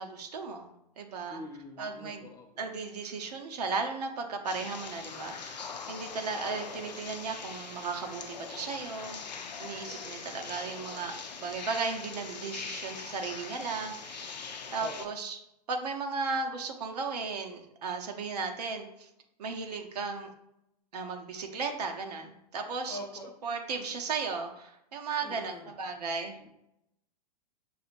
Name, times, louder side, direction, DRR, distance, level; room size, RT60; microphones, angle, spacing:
voice 1, 0.0-1.4 1.8-2.3 2.6-5.6 5.9-9.2 9.6-14.4 14.7-15.4 15.7-19.1 19.4-20.3 20.9-23.0 23.4-26.4, right 4 dB, 70° right, 4 dB, 0.8 m, -35 dB
voice 2, 1.3-2.7 14.8-15.1 22.9-23.3 25.2-25.7 26.4-26.5, left 2 dB, 15° left, 3 dB, 0.5 m, -44 dB
underground mine dripping, 4.5-15.1, left 5 dB, 85° left, 0.5 m, -42 dB
6.7 x 2.8 x 2.5 m, 0.81 s
hypercardioid pair, 105°, 21 cm